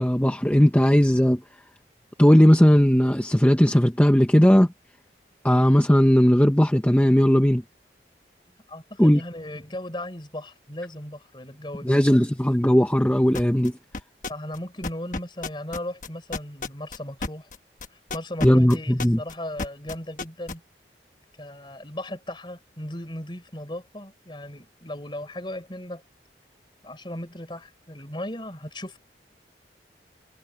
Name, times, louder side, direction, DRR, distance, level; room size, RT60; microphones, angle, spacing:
voice 1, 0.0-1.4 2.2-4.7 5.4-7.6 9.0-9.2 11.8-13.7 18.4-19.2, equal, 10° left, 0.9 m, -17 dB
voice 2, 8.7-12.0 14.3-17.5 17.9-20.6 21.4-26.0 26.8-29.0, left 1 dB, 25° left, 4.2 m, -36 dB
sound 1, 13.3-13.7 13.9-14.6 14.8-20.5, left 3 dB, 45° left, 1.2 m, -31 dB
head